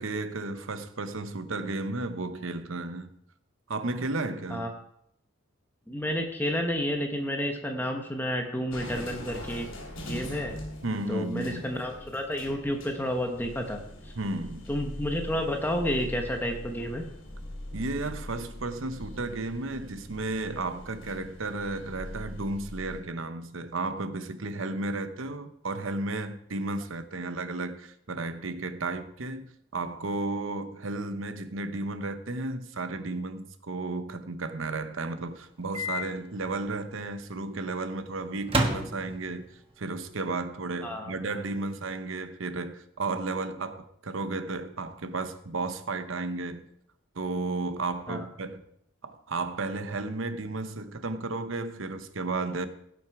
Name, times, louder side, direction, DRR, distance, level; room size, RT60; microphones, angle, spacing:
voice 1, 0.0-3.1 3.7-4.7 10.8-11.7 14.2-14.7 17.7-46.6 47.1-48.6 49.0-52.7, right 3 dB, 75° right, 0.9 m, -33 dB
voice 2, 5.9-9.7 10.0-10.6 11.1-13.8 14.0-14.1 14.7-17.0 40.8-41.1 48.1-48.3, equal, 10° left, 1.1 m, -30 dB
sound 1, 8.7-23.0, left 1 dB, 75° left, 3.1 m, -42 dB
Microwave oven, 35.7-36.0 36.4-36.5 38.4-39.5, right 1 dB, 25° right, 1.1 m, -29 dB
16.5 x 6.4 x 4.7 m
head